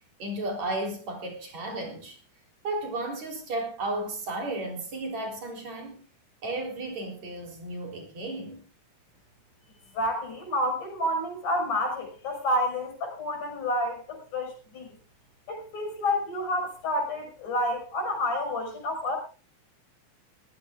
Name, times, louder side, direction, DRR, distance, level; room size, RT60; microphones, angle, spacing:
voice 1, 0.2-2.2 2.6-6.0 6.4-8.7, right 2 dB, 55° right, 2 dB, 4.9 m, -34 dB
voice 2, 10.0-15.0 15.5-19.2, left 1 dB, 65° left, 4 dB, 6.9 m, -29 dB
22.0 x 16.0 x 2.5 m, 0.36 s
omnidirectional pair, 3.9 m